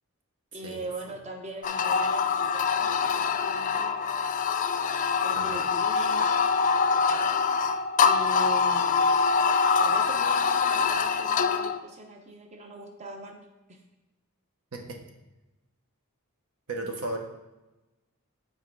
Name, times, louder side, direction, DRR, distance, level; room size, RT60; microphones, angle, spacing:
voice 1, 0.5-4.3 5.2-6.4 8.0-13.8, right 1 dB, 30° right, 3 dB, 0.8 m, -41 dB
sound 1, 1.6-11.8, left 5 dB, 35° left, 0.4 m, -24 dB
voice 2, 16.7-17.2, right 2 dB, 80° right, 3 dB, 1.2 m, -34 dB
8.3 x 4.4 x 4.8 m, 1.1 s
head